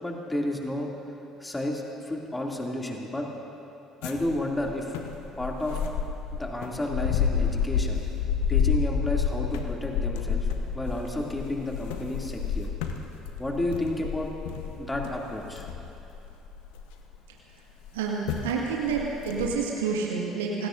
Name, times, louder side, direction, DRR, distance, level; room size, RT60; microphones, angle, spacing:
voice 1, 0.0-0.9 1.4-3.3 4.0-4.9 5.4-5.8 6.4-8.0 8.5-10.5 10.7-12.7 13.4-14.3 14.8-15.7, left 1 dB, 15° left, -1 dB, 2.7 m, -31 dB
sound 1, 4.0-17.2 17.9-18.0 18.3-18.5 18.9-19.5, left 7 dB, 65° left, 1.0 m, -30 dB
voice 2, 17.9-20.7, right 5 dB, 75° right, -2 dB, 1.8 m, -29 dB
26.5 x 19.5 x 2.6 m, 2.9 s
figure-of-eight pair, 55°, 0 cm